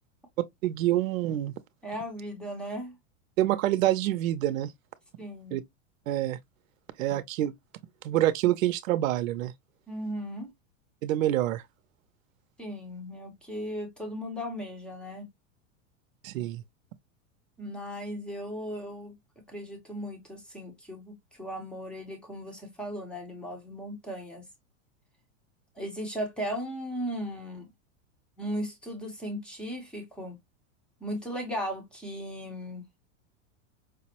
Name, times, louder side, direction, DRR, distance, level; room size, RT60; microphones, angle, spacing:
voice 1, 0.6-1.5 3.4-4.7 5.5-5.6 6.1-6.4 7.0-7.5 8.0-9.5 11.0-11.6 16.2-16.6, right 14 dB, 90° right, 0.6 m, -26 dB
voice 2, 1.8-2.9 5.2-5.6 9.9-10.5 12.6-15.3 17.6-19.1 19.5-24.5 25.8-27.7 28.4-30.4 31.0-32.8, equal, 5° left, 0.6 m, -37 dB
5.0 x 2.0 x 2.8 m
supercardioid pair, 165°, 39 cm